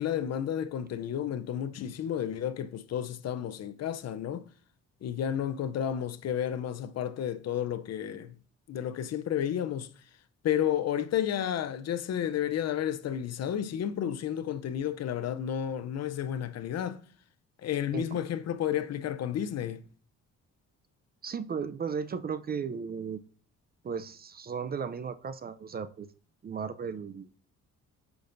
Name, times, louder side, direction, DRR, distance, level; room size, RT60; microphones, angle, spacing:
voice 1, 0.0-4.5 5.0-8.4 8.7-9.9 10.4-17.0 17.6-19.8, left 10 dB, 60° left, 0.6 m, -31 dB
voice 2, 21.2-23.2 23.8-26.1 26.4-27.3, right 6 dB, 30° right, 0.5 m, -35 dB
8.4 x 6.0 x 2.6 m
cardioid pair, 90°, 30 cm